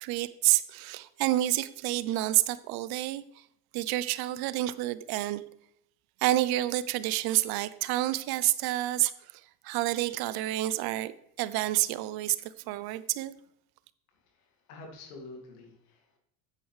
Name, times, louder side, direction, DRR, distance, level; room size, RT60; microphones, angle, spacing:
voice 1, 0.0-3.2 3.7-5.4 6.2-9.1 9.6-11.1 11.4-12.4 12.7-13.3, right 16 dB, 55° right, 16 dB, 0.7 m, -28 dB
voice 2, 14.1-16.2, left 3 dB, 85° left, 2 dB, 2.4 m, -48 dB
8.6 x 8.4 x 3.2 m, 0.74 s
hypercardioid pair, 90°, 45 cm